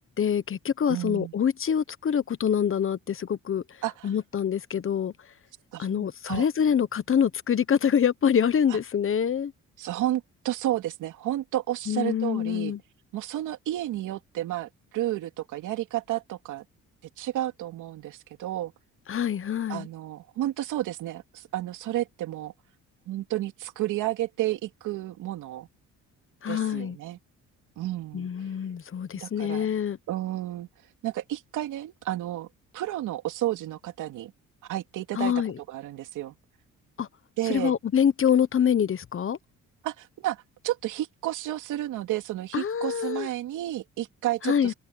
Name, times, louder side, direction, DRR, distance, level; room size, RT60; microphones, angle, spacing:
voice 1, 0.2-3.6 4.0-5.1 5.8-9.5 11.9-12.8 19.1-19.9 26.4-27.0 28.1-30.0 35.1-35.5 37.0-37.1 37.5-39.4 42.5-43.3 44.4-44.7, left 8 dB, 45° left, 1.2 m, -25 dB
voice 2, 0.9-1.3 3.8-4.1 5.7-6.4 8.7-8.8 9.8-12.7 13.1-16.6 17.2-18.7 19.7-22.5 23.1-25.7 26.5-27.2 27.8-28.3 29.2-29.7 30.1-30.7 31.0-32.5 32.7-34.3 34.6-35.3 35.7-36.3 37.4-37.8 39.8-44.7, right 14 dB, 85° right, 2.8 m, -31 dB
open air
cardioid pair, 90°, 30 cm